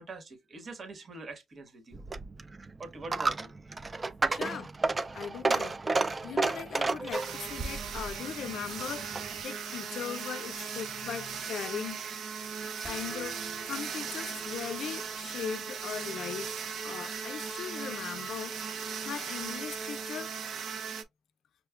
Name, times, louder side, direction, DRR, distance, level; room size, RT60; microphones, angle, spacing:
voice 1, 0.0-2.0 2.8-3.5, right 3 dB, 45° right, 1.1 m, -44 dB
Coin (dropping), 1.9-9.4, right 3 dB, 25° right, 0.4 m, -32 dB
voice 2, 4.2-4.7 5.1-12.0 12.8-13.4 13.7-16.5 16.8-18.8 19.0-20.4, left 8 dB, 70° left, 0.4 m, -39 dB
sound 1, 7.1-21.0, right 6 dB, 70° right, 0.6 m, -38 dB
sound 2, 12.8-15.6, right 2 dB, 10° left, 0.9 m, -51 dB
5.9 x 2.1 x 2.2 m
cardioid pair, 90°, 0 cm